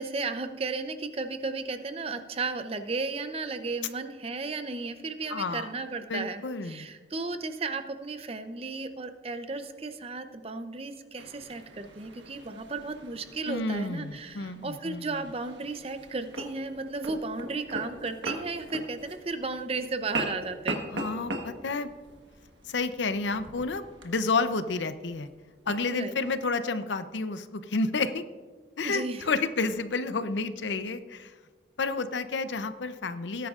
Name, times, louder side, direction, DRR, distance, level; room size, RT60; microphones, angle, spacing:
voice 1, 0.0-20.9 25.9-26.1 28.8-29.3, right 3 dB, 30° right, 9 dB, 0.6 m, -34 dB
voice 2, 5.3-5.7 6.1-6.9 13.5-15.2 20.9-21.9 22.6-25.3 25.7-28.2 28.8-31.3 31.8-33.5, left 3 dB, 80° left, 11 dB, 0.6 m, -30 dB
sound 1, 11.2-26.4, right 2 dB, 85° right, 1.3 m, -41 dB
18.0 x 10.0 x 2.5 m, 1.4 s
head